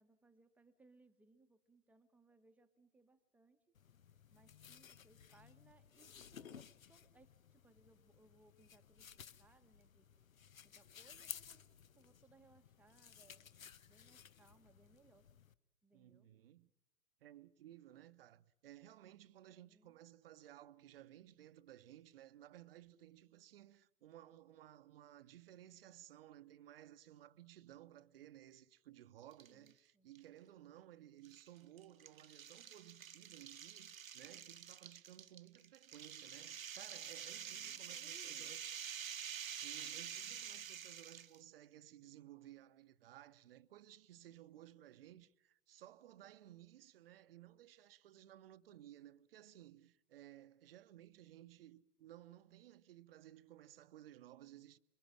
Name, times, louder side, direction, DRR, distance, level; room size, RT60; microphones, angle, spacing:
voice 1, 0.0-3.6 4.3-10.1 10.6-15.3 15.8-16.7 19.5-20.0 29.5-30.1 37.5-38.5, right 3 dB, 5° right, 1.0 m, -69 dB
sound 1, 3.8-15.5, left 8 dB, 65° left, 1.0 m, -57 dB
voice 2, 15.9-16.7 17.2-38.7 39.5-54.8, right 13 dB, 40° right, 0.9 m, -58 dB
sound 2, 29.3-29.7 30.1-30.2 31.2-41.4, right 8 dB, 65° right, 1.1 m, -48 dB
28.0 x 23.0 x 7.4 m
figure-of-eight pair, 115°, 44 cm